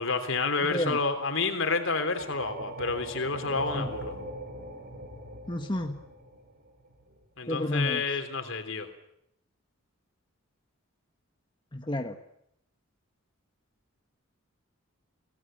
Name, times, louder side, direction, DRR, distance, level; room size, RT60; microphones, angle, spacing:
voice 1, 0.0-4.1 7.4-8.9, left 4 dB, 65° left, 6 dB, 3.5 m, -29 dB
voice 2, 0.6-1.0 3.7-3.9 5.5-6.0 7.5-8.2 11.7-12.2, left 1 dB, 20° left, 5 dB, 1.2 m, -31 dB
sound 1, 2.2-7.2, right 1 dB, 50° right, 5.3 m, -41 dB
29.5 x 18.5 x 9.0 m, 0.76 s
head